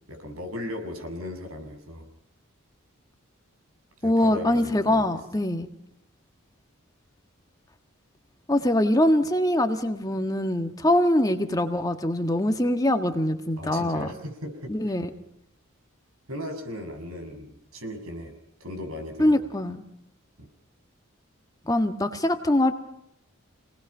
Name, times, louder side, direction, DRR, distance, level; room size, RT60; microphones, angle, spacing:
voice 1, 0.1-2.0 4.0-5.1 13.6-14.9 16.3-19.4, left 1 dB, 85° right, 5 dB, 6.9 m, -37 dB
voice 2, 4.0-5.7 8.5-14.1 14.7-15.1 19.2-19.8 21.7-22.7, left 1 dB, 15° left, 6 dB, 1.6 m, -23 dB
29.0 x 19.5 x 5.6 m, 0.78 s
head